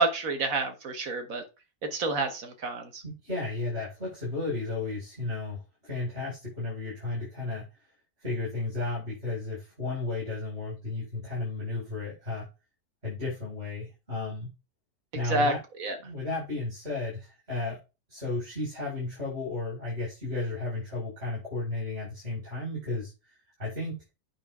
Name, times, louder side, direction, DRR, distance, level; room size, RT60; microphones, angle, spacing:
voice 1, 0.0-1.4 1.9-3.0 15.2-15.5 15.8-16.0, right 3 dB, 50° right, 6 dB, 1.7 m, -28 dB
voice 2, 3.0-7.7 8.2-12.5 13.0-14.5 15.1-15.6 16.0-17.8 18.1-23.1 23.6-23.9, left 2 dB, 35° right, -6 dB, 5.1 m, -33 dB
8.9 x 5.9 x 3.6 m, 0.29 s
omnidirectional pair, 1.9 m